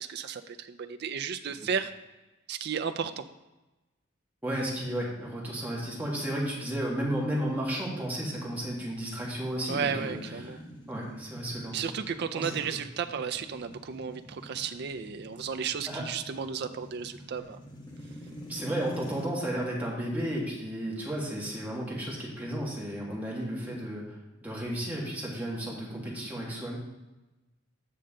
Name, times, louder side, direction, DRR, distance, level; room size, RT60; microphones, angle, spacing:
voice 1, 0.0-1.9 2.5-3.2 9.7-10.6 11.7-17.6, right 6 dB, 50° right, 7 dB, 0.4 m, -33 dB
voice 2, 4.4-10.5 10.9-11.9 12.4-12.8 15.9-16.0 18.5-26.8, right 1 dB, 10° right, -5 dB, 1.8 m, -33 dB
sound 1, 9.8-19.3, equal, 20° left, 1.3 m, -46 dB
8.5 x 6.5 x 3.8 m, 1.1 s
head